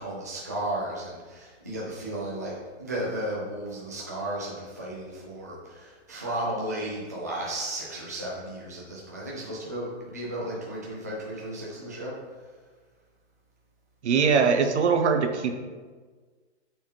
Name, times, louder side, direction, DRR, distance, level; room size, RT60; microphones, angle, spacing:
voice 1, 0.0-12.1, right 1 dB, 15° right, -6 dB, 0.4 m, -34 dB
voice 2, 14.0-15.6, right 5 dB, 75° right, 7 dB, 0.9 m, -22 dB
8.2 x 4.3 x 3.5 m, 1.4 s
hypercardioid pair, 175°, 34 cm